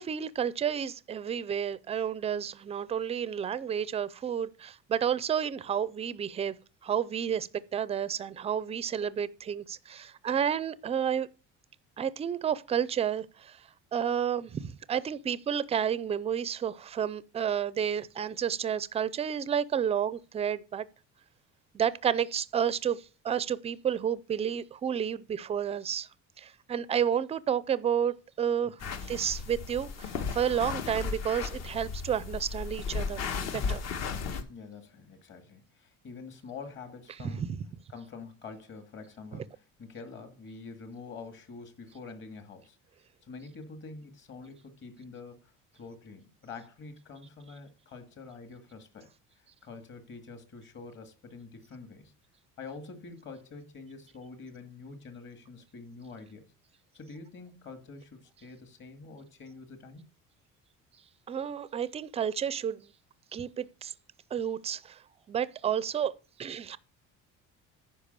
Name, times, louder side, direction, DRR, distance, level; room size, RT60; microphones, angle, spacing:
voice 1, 0.0-6.5 6.8-11.3 12.0-13.6 13.9-20.8 21.7-26.1 26.4-28.8 29.1-33.2 33.5-33.8 37.4-37.6 61.3-62.9 63.3-63.9 64.3-65.0 65.3-66.1 66.4-66.8, right 8 dB, 20° right, 0.4 m, -31 dB
sound 1, 28.8-34.4, left 5 dB, 55° left, 1.5 m, -35 dB
voice 2, 34.5-37.5 37.9-42.8 43.2-49.1 49.4-52.1 52.6-56.5 56.9-60.0, left 4 dB, 40° left, 2.1 m, -46 dB
10.0 x 5.4 x 6.7 m
cardioid pair, 170°, 31 cm